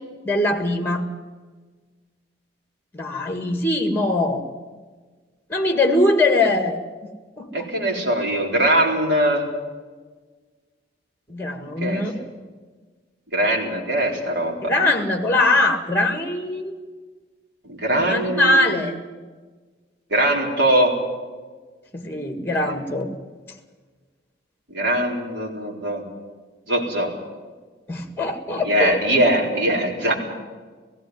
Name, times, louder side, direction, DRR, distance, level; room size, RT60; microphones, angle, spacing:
voice 1, 0.2-1.1 2.9-4.5 5.5-6.8 7.4-7.7 11.3-12.2 14.6-16.7 18.0-18.9 21.9-23.1 27.9-29.0, left 2 dB, 10° left, 6 dB, 1.8 m, -21 dB
voice 2, 7.5-9.5 11.8-12.0 13.3-14.7 17.7-18.7 20.1-21.0 22.5-22.7 24.7-26.0 26.7-27.2 28.6-30.1, right 1 dB, 70° right, -1 dB, 4.3 m, -21 dB
17.5 x 16.5 x 9.5 m, 1.4 s
head